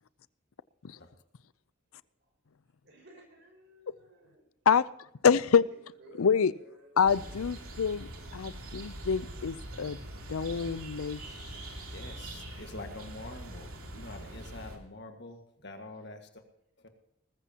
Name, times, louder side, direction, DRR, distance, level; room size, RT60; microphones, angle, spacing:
voice 1, 2.8-4.4 5.6-7.6 15.3-15.4, right 1 dB, 50° right, 2 dB, 5.9 m, -57 dB
voice 2, 5.2-5.6 6.2-6.5 7.0-10.0 10.3-11.5, left 6 dB, 85° left, 18 dB, 0.5 m, -26 dB
sound 1, 7.0-14.8, right 1 dB, 90° right, 3.1 m, -43 dB
voice 3, 11.9-16.4 16.8-16.9, left 2 dB, 50° left, 5 dB, 1.8 m, -46 dB
20.0 x 14.5 x 2.9 m, 0.80 s
head